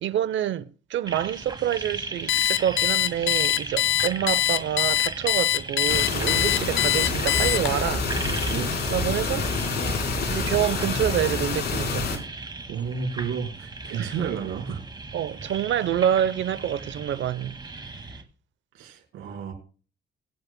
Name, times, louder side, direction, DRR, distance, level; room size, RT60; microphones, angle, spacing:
voice 1, 0.0-8.1 8.9-9.5 10.3-12.2 13.9-14.1 15.1-18.2, right 10 dB, 70° right, 0.8 m, -27 dB
sound 1, 1.1-18.2, right 3 dB, 20° right, 2.0 m, -37 dB
Alarm, 2.3-7.9, left 14 dB, 85° left, 0.6 m, -23 dB
sound 2, 5.9-12.2, left 3 dB, 55° left, 4.2 m, -27 dB
voice 2, 12.7-14.8 18.7-19.5, right 7 dB, 90° right, 4.4 m, -31 dB
21.5 x 9.6 x 2.2 m
cardioid pair, 90°, 20 cm